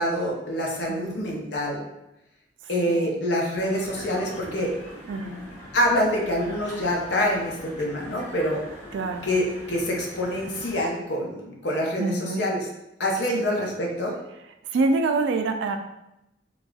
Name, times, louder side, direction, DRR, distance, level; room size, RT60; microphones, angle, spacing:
voice 1, 0.0-1.8 2.7-4.7 5.7-8.6 9.2-12.6 13.0-14.1, equal, 65° left, -1 dB, 0.7 m, -26 dB
sound 1, 3.5-10.9, equal, 35° left, 1.3 m, -42 dB
voice 2, 5.1-5.4 8.9-9.3 12.0-12.5 13.3-13.7 14.7-15.8, right 3 dB, 80° right, 6 dB, 0.3 m, -26 dB
4.0 x 2.3 x 2.3 m, 0.89 s
head